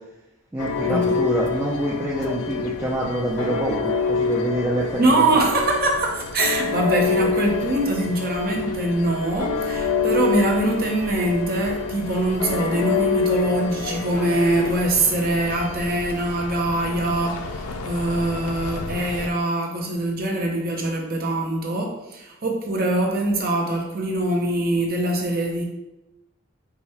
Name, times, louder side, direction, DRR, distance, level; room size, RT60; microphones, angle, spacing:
voice 1, 0.5-5.0, right 1 dB, 10° right, -6 dB, 0.4 m, -26 dB
sound 1, 0.6-19.3, left 5 dB, 90° left, 0.4 m, -27 dB
voice 2, 5.0-25.6, right 2 dB, 45° right, 0 dB, 0.7 m, -23 dB
4.8 x 2.2 x 4.2 m, 0.96 s
head